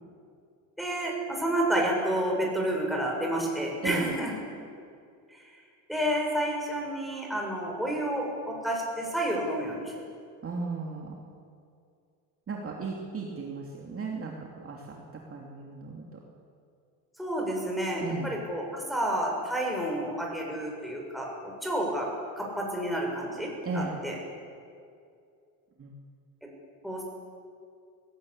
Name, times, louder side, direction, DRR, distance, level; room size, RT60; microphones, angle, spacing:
voice 1, 0.8-4.3 5.3-5.4 5.9-9.9 17.2-23.5 23.7-24.2 26.4-26.5 26.8-27.0, right 1 dB, ahead, -2 dB, 6.7 m, -30 dB
voice 2, 10.4-11.2 12.5-16.2 18.0-18.3 23.6-24.0 25.8-26.0, right 3 dB, 30° right, -1 dB, 2.9 m, -36 dB
19.5 x 17.5 x 8.8 m, 2.4 s
supercardioid pair, 110°, 44 cm